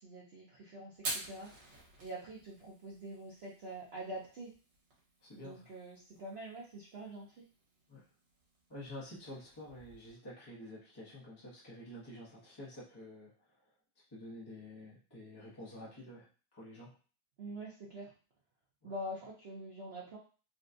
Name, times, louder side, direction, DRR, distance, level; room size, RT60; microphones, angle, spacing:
voice 1, 0.0-1.7 2.0-4.5 5.3-7.4 17.4-18.1 18.8-20.2, right 1 dB, 90° right, -5 dB, 0.5 m, -45 dB
Fire, 0.9-10.1, right 2 dB, 70° right, 1.8 m, -49 dB
voice 2, 5.2-5.7 7.9-8.0 8.7-13.3 14.1-16.3 16.5-16.9 18.8-18.9, left 1 dB, 30° left, -7 dB, 0.4 m, -49 dB
4.0 x 2.2 x 2.5 m, 0.37 s
omnidirectional pair, 2.0 m